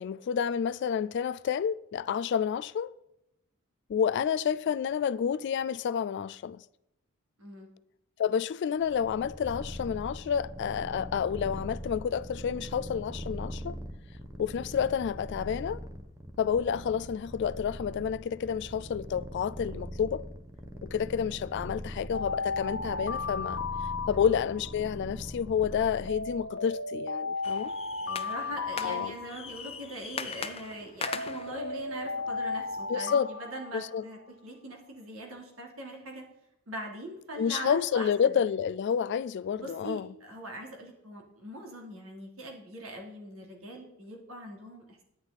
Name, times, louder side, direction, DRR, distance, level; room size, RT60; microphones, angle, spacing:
voice 1, 0.0-2.9 3.9-6.6 8.2-13.8 14.4-15.8 16.4-20.2 20.8-23.6 24.1-27.7 28.8-29.1 32.9-33.3 33.7-34.0 37.4-40.1, left 7 dB, 55° left, 0.3 m, -29 dB
voice 2, 7.4-7.7 24.1-24.3 28.0-36.2 36.7-38.3 39.6-45.0, right 1 dB, 85° right, 3.1 m, -42 dB
Purr, 8.8-26.5, equal, 15° right, 1.0 m, -42 dB
Alarm, 22.1-24.7 26.1-29.7 31.1-34.3, left 4 dB, 70° left, 1.0 m, -35 dB
sound 1, 27.4-32.9, left 6 dB, 30° left, 0.6 m, -41 dB
11.0 x 9.7 x 4.1 m
head